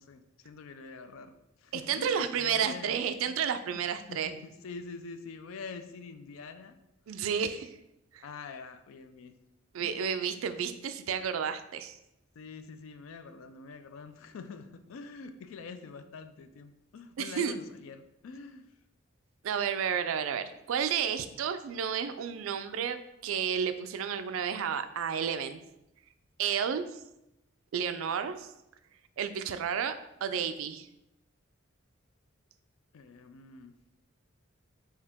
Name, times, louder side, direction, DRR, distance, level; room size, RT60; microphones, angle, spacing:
voice 1, 0.0-3.0 3.3-3.8 4.1-6.8 8.2-9.4 9.8-10.0 12.4-18.7 32.9-33.8, left 4 dB, 70° left, 9 dB, 0.4 m, -46 dB
voice 2, 1.7-4.3 7.1-7.7 8.1-8.2 9.7-12.0 17.2-17.6 19.4-25.6 26.4-27.0 27.7-28.5 29.2-29.9 30.2-30.9, right 7 dB, 70° right, 10 dB, 0.3 m, -31 dB
4.6 x 2.8 x 3.5 m, 0.87 s
head